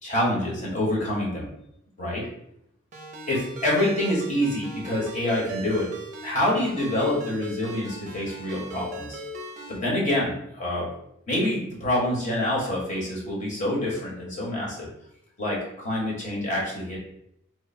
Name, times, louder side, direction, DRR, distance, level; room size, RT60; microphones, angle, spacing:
voice 1, 0.0-1.5 2.0-2.2 3.3-5.9 6.2-9.2 9.7-10.9 11.3-14.9 15.4-17.0, left 1 dB, 35° left, -4 dB, 1.2 m, -26 dB
Ringtone, 2.9-9.8, right 2 dB, 40° right, 0.5 m, -38 dB
3.1 x 2.1 x 4.2 m, 0.75 s
head